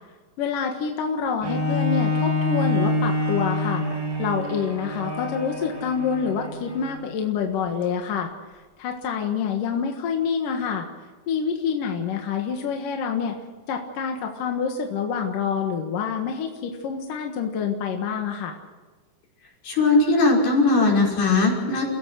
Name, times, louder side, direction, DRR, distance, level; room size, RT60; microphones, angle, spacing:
voice 1, 0.4-3.8 4.2-8.3 8.8-10.9 11.3-13.4 13.7-18.6, left 6 dB, 65° left, 3 dB, 3.1 m, -27 dB
Bowed string instrument, 1.4-7.0 7.7-7.8, left 2 dB, 10° right, 1.5 m, -26 dB
voice 2, 19.6-21.8, left 3 dB, 80° left, -2 dB, 7.6 m, -19 dB
30.0 x 17.0 x 6.5 m, 1.4 s
omnidirectional pair, 4.4 m